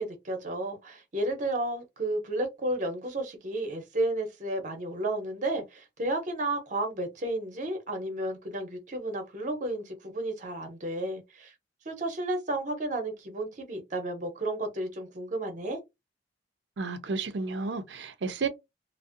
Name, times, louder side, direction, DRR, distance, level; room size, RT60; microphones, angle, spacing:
voice 1, 0.0-11.5 11.8-15.8, right 1 dB, 45° right, 0.7 m, -32 dB
voice 2, 16.8-18.5, right 4 dB, 80° right, 0.5 m, -32 dB
2.5 x 2.1 x 2.5 m
head